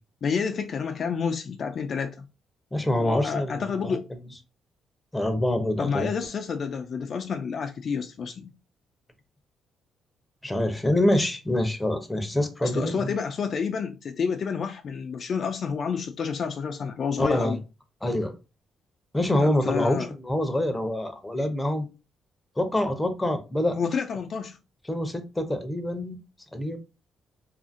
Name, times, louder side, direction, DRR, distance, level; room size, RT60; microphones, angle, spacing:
voice 1, 0.2-2.3 3.0-4.1 5.8-8.5 12.6-17.6 19.4-20.1 23.8-24.6, left 6 dB, 50° left, 0.3 m, -29 dB
voice 2, 2.7-4.0 5.1-6.1 10.4-13.2 17.2-17.6 18.0-18.3 19.1-21.9 22.6-23.8 24.9-26.2 26.5-26.8, left 1 dB, 10° left, 0.6 m, -26 dB
2.7 x 2.5 x 2.5 m
cardioid pair, 90°, 0 cm